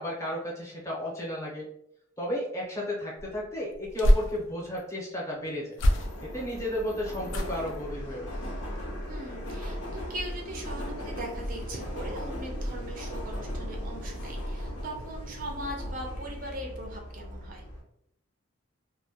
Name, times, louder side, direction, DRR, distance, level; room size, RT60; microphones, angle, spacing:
voice 1, 0.0-1.7 2.2-5.7 6.2-8.3, left 1 dB, 15° left, -4 dB, 0.6 m, -33 dB
sound 1, 3.2-4.8 5.7-6.5 7.3-7.8 8.3-8.6 8.9-9.0, equal, 60° left, 0.3 m, -27 dB
Subway metro underground, 5.8-17.8, equal, 90° left, 0.7 m, -37 dB
voice 2, 9.1-17.6, right 1 dB, 40° right, 1 dB, 0.4 m, -40 dB
2.1 x 2.1 x 2.7 m, 0.73 s
head